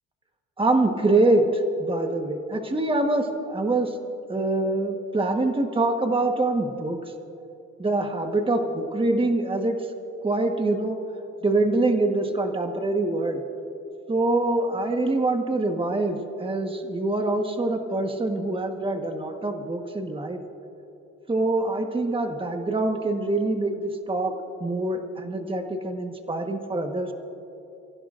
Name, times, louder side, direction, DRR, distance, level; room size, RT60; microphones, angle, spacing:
voice 1, 0.6-1.4 1.8-3.9 4.3-7.0 7.8-9.7 10.2-11.0 11.4-13.4 14.1-20.4 21.3-24.3 24.6-27.1, right 2 dB, 15° right, 4 dB, 1.4 m, -24 dB
30.0 x 16.0 x 2.6 m, 2.9 s
cardioid pair, 90°, 30 cm